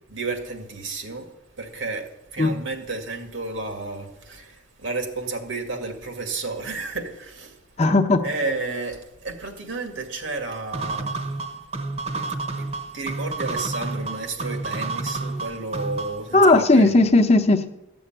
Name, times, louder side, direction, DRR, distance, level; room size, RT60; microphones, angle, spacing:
voice 1, 0.1-1.3 1.6-7.6 8.2-11.2 12.6-12.7 12.9-17.0, right 3 dB, 85° right, 2.2 m, -32 dB
voice 2, 7.8-8.3 16.3-17.7, left 2 dB, 35° left, 0.8 m, -16 dB
sound 1, 10.7-16.3, right 3 dB, 35° right, 0.9 m, -30 dB
13.0 x 7.1 x 8.9 m
head